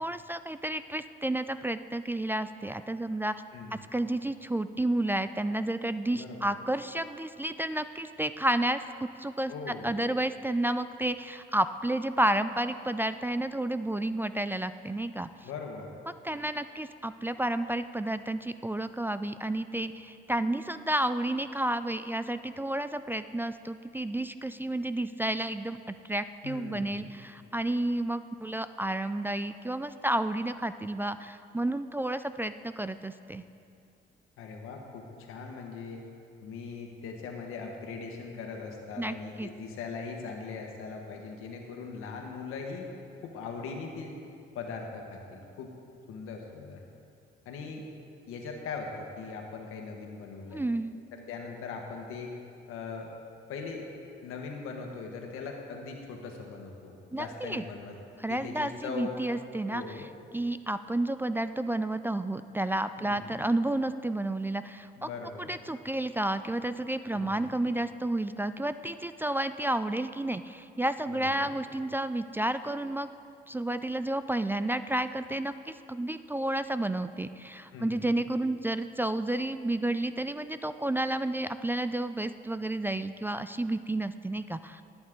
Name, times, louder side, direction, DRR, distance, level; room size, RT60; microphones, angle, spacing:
voice 1, 0.0-3.3 3.7-8.8 9.2-9.5 9.8-15.3 16.2-33.4 39.0-39.5 50.5-51.0 57.1-57.6 58.2-59.8 60.3-65.1 65.4-73.1 73.5-84.8, right 1 dB, 10° right, 12 dB, 0.3 m, -31 dB
voice 2, 6.1-6.5 9.5-9.9 15.4-15.9 26.4-27.1 34.4-36.0 36.4-42.9 43.2-44.2 44.5-45.7 46.1-46.8 47.4-47.8 48.3-50.7 51.1-52.3 52.7-53.1 53.5-53.8 54.2-58.0 58.3-59.1 59.7-60.0 63.0-63.4 65.0-65.5 67.1-67.5 71.1-71.5 77.7-78.1, left 5 dB, 90° left, 2 dB, 1.6 m, -40 dB
19.0 x 8.8 x 3.8 m, 2.5 s
cardioid pair, 95°, 21 cm